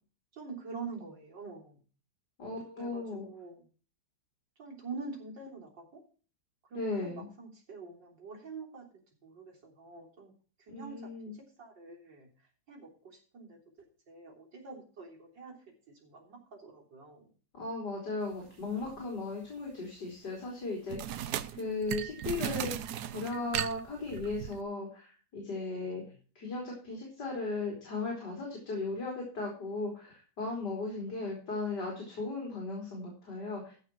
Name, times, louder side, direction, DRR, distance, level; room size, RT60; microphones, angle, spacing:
voice 1, 0.3-1.8 2.8-3.7 4.6-6.0 6.7-8.9 9.2-10.3 10.6-13.6 14.1-15.6 15.9-17.3 25.7-26.1, right 4 dB, 90° right, -1 dB, 4.2 m, -46 dB
voice 2, 2.4-3.3 6.7-7.3 10.7-11.3 17.5-26.0 26.4-33.7, left 3 dB, 65° left, -1 dB, 4.1 m, -37 dB
sound 1, 18.8-19.1 20.9-24.6, right 10 dB, 70° right, 1.2 m, -37 dB
15.0 x 5.8 x 6.0 m, 0.39 s
omnidirectional pair, 1.9 m